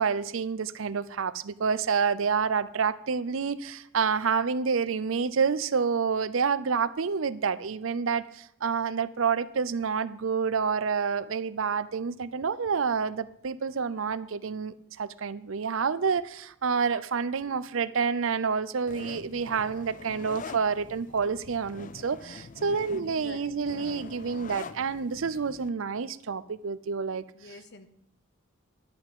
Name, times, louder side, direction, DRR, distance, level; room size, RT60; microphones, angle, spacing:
voice 1, 0.0-27.2, right 5 dB, 70° right, 16 dB, 0.5 m, -28 dB
sound 1, 18.9-25.7, left 5 dB, 40° left, 0.4 m, -44 dB
voice 2, 23.0-23.6 27.3-27.9, left 3 dB, 55° left, 10 dB, 1.0 m, -47 dB
11.0 x 5.7 x 8.7 m, 0.70 s
head